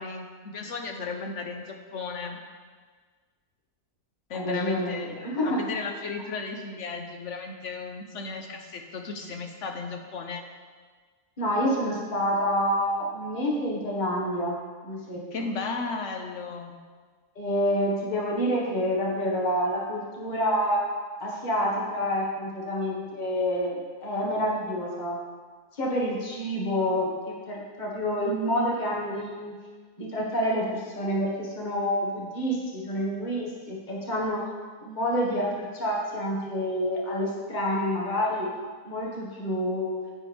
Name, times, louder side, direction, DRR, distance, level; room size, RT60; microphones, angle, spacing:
voice 1, 0.0-2.4 4.3-10.4 15.3-16.7, left 4 dB, 55° left, 4 dB, 1.2 m, -35 dB
voice 2, 4.3-5.6 11.4-14.6 14.8-15.5 17.3-20.8 21.2-25.2 25.8-29.5 30.0-34.4 34.8-38.5 38.8-40.0, equal, 30° left, -4 dB, 1.8 m, -28 dB
10.5 x 8.6 x 3.5 m, 1.5 s
omnidirectional pair, 1.7 m